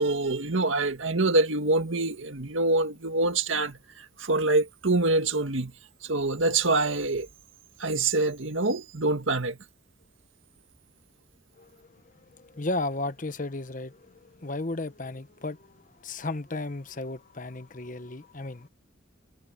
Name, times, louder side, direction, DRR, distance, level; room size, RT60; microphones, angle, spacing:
voice 1, 0.0-5.7 6.0-7.3 7.8-9.6, right 2 dB, 85° right, 1.9 m, -25 dB
voice 2, 11.6-18.7, left 2 dB, 40° left, 1.0 m, -35 dB
head